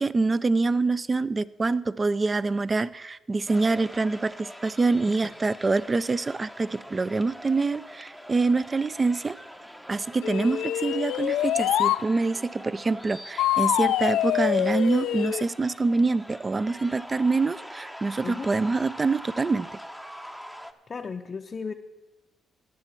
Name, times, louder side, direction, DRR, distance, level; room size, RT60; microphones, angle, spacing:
voice 1, 0.0-9.3 9.9-19.7, right 3 dB, 25° right, 18 dB, 0.4 m, -25 dB
sound 1, 3.5-20.7, equal, 5° right, 0.7 m, -43 dB
sound 2, 10.2-12.0 13.4-15.4, left 12 dB, 85° left, 0.3 m, -25 dB
voice 2, 20.9-21.7, left 5 dB, 40° left, 3 dB, 0.5 m, -35 dB
14.0 x 9.8 x 4.5 m, 1.1 s
cardioid pair, 90°, 0 cm